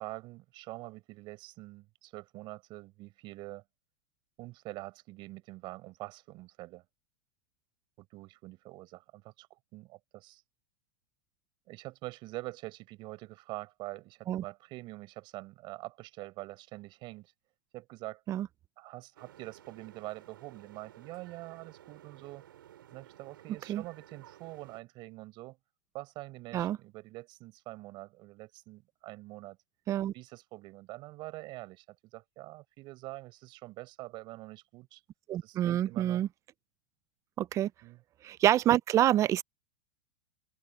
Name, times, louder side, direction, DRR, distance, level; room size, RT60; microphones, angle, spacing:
voice 1, 0.0-3.6 4.4-6.8 8.0-10.4 11.7-17.3 17.7-18.2 18.8-22.4 22.9-25.6 25.9-29.6 30.1-35.0 35.4-36.3 37.8-38.0, right 20 dB, 45° right, 6.0 m, -45 dB
sound 1, 19.2-24.8, right 12 dB, 85° right, 6.9 m, -55 dB
voice 2, 35.3-36.3 37.4-37.7 38.2-39.4, right 12 dB, 25° right, 0.4 m, -27 dB
open air
supercardioid pair, 130°, 11 cm